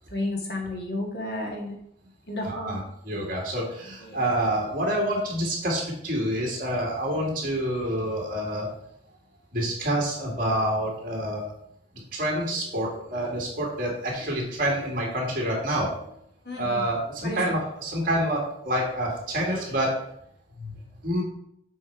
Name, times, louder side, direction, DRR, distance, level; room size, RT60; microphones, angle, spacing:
voice 1, 0.1-1.8 2.3-2.8 4.0-4.3 16.4-16.9 17.2-17.5 20.5-21.0, left 1 dB, 55° left, -1 dB, 1.9 m, -33 dB
voice 2, 2.4-2.8 3.1-8.7 9.5-11.5 12.1-16.1 16.6-20.0 21.0-21.2, right 1 dB, 50° right, -2 dB, 2.4 m, -27 dB
6.9 x 4.4 x 4.8 m, 0.72 s
head